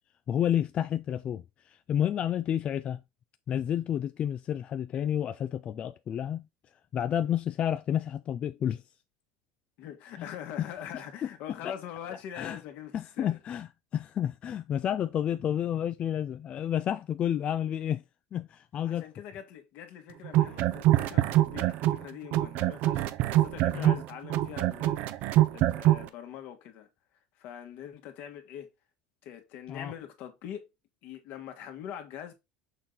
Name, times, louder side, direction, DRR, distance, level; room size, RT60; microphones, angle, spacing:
voice 1, 0.3-3.0 3.5-6.4 6.9-8.8 10.2-10.3 10.6-10.7 11.2-11.3 11.6-11.7 12.3-12.6 12.9-13.7 13.9-18.0 18.3-19.1 20.4-20.5 23.7-24.0 29.7-29.9, left 10 dB, 35° left, 0.4 m, -30 dB
voice 2, 9.8-13.4 18.9-26.9 27.4-28.7 29.2-30.6 31.0-32.3, left 9 dB, 60° left, 1.6 m, -43 dB
sound 1, 20.2-22.0 22.3-26.1, right 14 dB, 60° right, 0.6 m, -24 dB
6.5 x 3.8 x 3.9 m
supercardioid pair, 125°, 3 cm